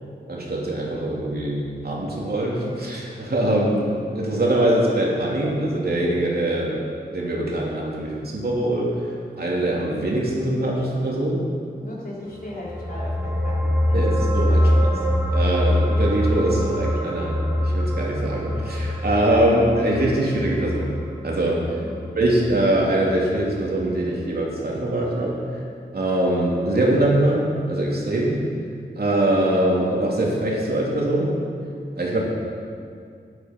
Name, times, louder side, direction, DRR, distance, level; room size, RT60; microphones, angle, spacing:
voice 1, 0.3-6.7 7.1-8.9 9.4-11.4 13.9-15.0 15.3-17.4 17.6-20.9 21.2-21.6 22.1-25.3 25.9-27.4 27.7-28.4 28.9-31.3 32.0-32.2, right 1 dB, 60° right, -4 dB, 2.9 m, -23 dB
voice 2, 11.8-14.7 21.8-22.0, left 1 dB, 55° left, -5 dB, 3.3 m, -37 dB
sound 1, 12.5-23.2 23.5-23.7, left 1 dB, 10° right, 1.5 m, -24 dB
13.0 x 9.6 x 5.4 m, 2.3 s
wide cardioid pair, 100°, 18 cm